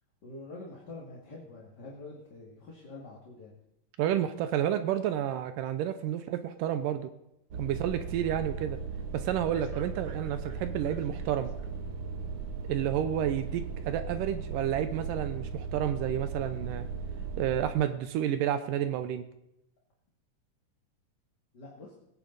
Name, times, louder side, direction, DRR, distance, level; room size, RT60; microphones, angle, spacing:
voice 1, 0.2-3.5 21.5-21.9, left 2 dB, 35° left, -3 dB, 2.3 m, -46 dB
voice 2, 4.0-7.1 7.6-8.8 9.1-11.5 12.7-16.9 17.4-19.2, right 10 dB, 80° right, 10 dB, 2.3 m, -30 dB
sound 1, 7.5-17.7, right 5 dB, 55° right, 1.8 m, -37 dB
21.5 x 9.9 x 4.0 m, 0.87 s
omnidirectional pair, 3.9 m